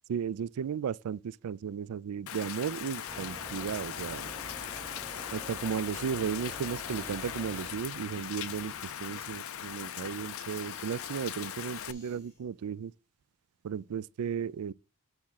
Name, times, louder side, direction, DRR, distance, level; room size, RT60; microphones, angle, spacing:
voice 1, 0.1-4.3 5.3-12.9 13.6-14.7, right 7 dB, 80° right, 0.3 m, -35 dB
Rain, 2.3-11.9, left 10 dB, 70° left, 0.5 m, -39 dB
sound 1, 3.1-7.8, right 2 dB, 15° right, 0.7 m, -47 dB
sound 2, 10.1-12.5, left 3 dB, 15° left, 3.2 m, -59 dB
8.7 x 3.6 x 5.7 m
head